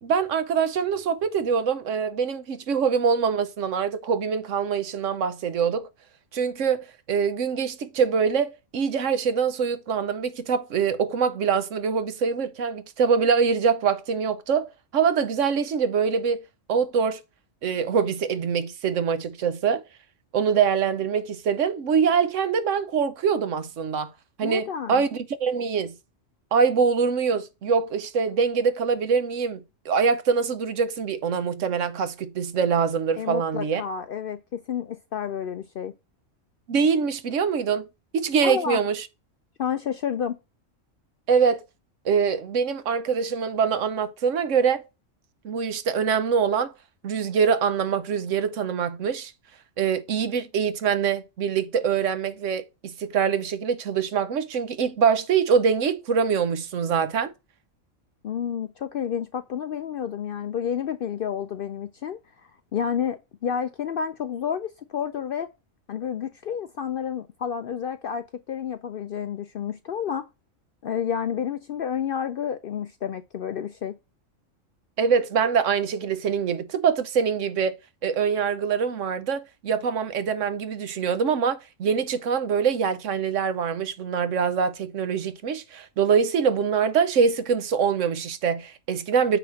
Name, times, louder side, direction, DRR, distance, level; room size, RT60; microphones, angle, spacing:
voice 1, 0.0-5.9 6.3-16.4 16.7-17.2 17.6-19.8 20.3-24.1 24.4-25.9 26.5-33.8 36.7-37.9 38.1-39.1 41.3-41.6 42.0-44.8 45.4-46.7 47.0-49.3 49.8-57.3 75.0-89.4, right 6 dB, 75° right, 1.1 m, -24 dB
voice 2, 24.4-25.0 33.2-35.9 38.4-38.8 39.6-40.4 58.2-62.2 62.7-65.5 65.9-70.3 70.8-74.0, left 8 dB, 60° left, 0.6 m, -30 dB
9.0 x 3.0 x 6.1 m
omnidirectional pair, 1.3 m